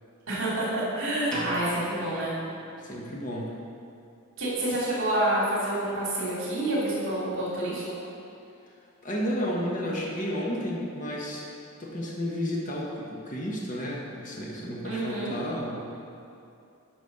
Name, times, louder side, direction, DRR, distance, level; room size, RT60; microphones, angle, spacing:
voice 1, 0.3-2.3 4.4-7.8 14.8-15.3, right 1 dB, 60° right, -7 dB, 2.6 m, -28 dB
sound 1, 1.3-3.2, right 1 dB, 5° left, 2.0 m, -37 dB
voice 2, 2.8-3.5 9.0-11.5 11.8-15.8, equal, 35° left, -3 dB, 1.3 m, -32 dB
11.0 x 5.5 x 6.6 m, 2.7 s
head